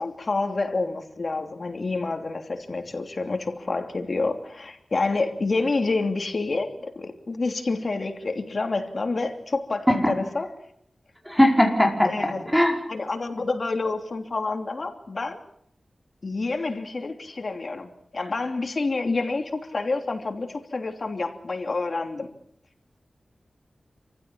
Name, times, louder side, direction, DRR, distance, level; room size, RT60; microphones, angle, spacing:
voice 1, 0.0-10.5 12.0-12.4 12.9-15.4 16.2-22.3, left 3 dB, 50° left, 3.0 m, -28 dB
voice 2, 11.3-12.8, left 1 dB, ahead, 4.8 m, -20 dB
27.5 x 15.5 x 8.7 m
wide cardioid pair, 95°, 0 cm